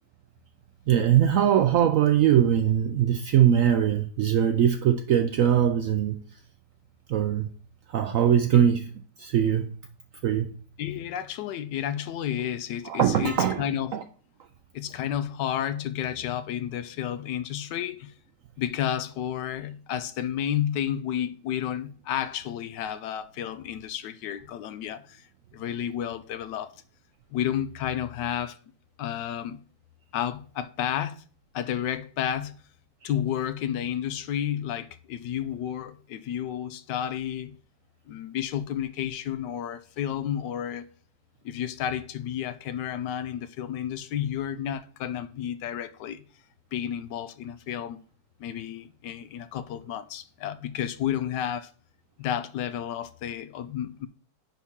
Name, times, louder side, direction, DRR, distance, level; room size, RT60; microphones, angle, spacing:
voice 1, 0.9-6.2 7.1-7.5 7.9-8.9 9.2-9.8 10.2-10.5 12.8-13.6 13.9-14.0 33.0-33.1, right 9 dB, 75° right, 0.7 m, -21 dB
voice 2, 10.8-13.9 14.7-18.1 18.6-26.7 27.3-28.6 29.0-29.6 30.1-31.2 31.5-32.6 33.0-37.6 38.1-40.9 41.4-46.2 46.7-48.0 48.4-51.7 52.2-54.1, left 10 dB, 85° left, 1.3 m, -31 dB
9.9 x 4.1 x 3.6 m
omnidirectional pair, 1.9 m